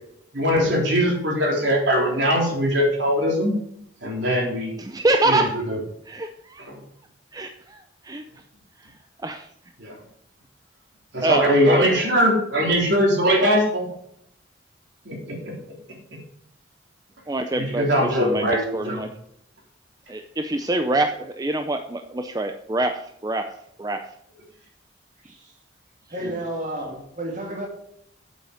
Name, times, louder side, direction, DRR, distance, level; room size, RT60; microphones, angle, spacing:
voice 1, 0.3-3.5 4.0-4.7 5.2-5.8 6.7-6.8 9.8-9.9 11.1-13.9 15.0-15.5 17.6-19.0 26.2-26.3, equal, 65° right, -1 dB, 3.5 m, -21 dB
voice 2, 4.8-5.7 6.1-6.7 7.3-8.2 9.2-9.5 11.2-12.0 17.3-19.1 20.1-23.5 23.8-24.1, right 2 dB, 20° right, 6 dB, 0.5 m, -25 dB
voice 3, 26.1-27.7, right 1 dB, 40° right, 0 dB, 2.7 m, -31 dB
8.5 x 8.3 x 5.1 m, 0.74 s
head